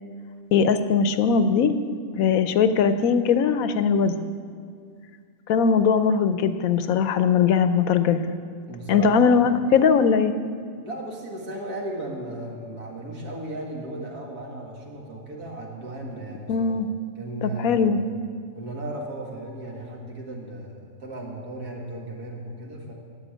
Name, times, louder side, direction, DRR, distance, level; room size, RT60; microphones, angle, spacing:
voice 1, 0.5-1.7 2.1-4.1 5.5-8.3 8.9-10.3 16.5-16.9 17.4-18.0, left 6 dB, 70° left, 10 dB, 1.0 m, -20 dB
voice 2, 8.7-9.5 10.8-16.7 17.2-18.1 18.5-22.9, right 1 dB, 80° right, -1 dB, 2.5 m, -36 dB
11.5 x 8.0 x 9.0 m, 2.1 s
omnidirectional pair, 1.6 m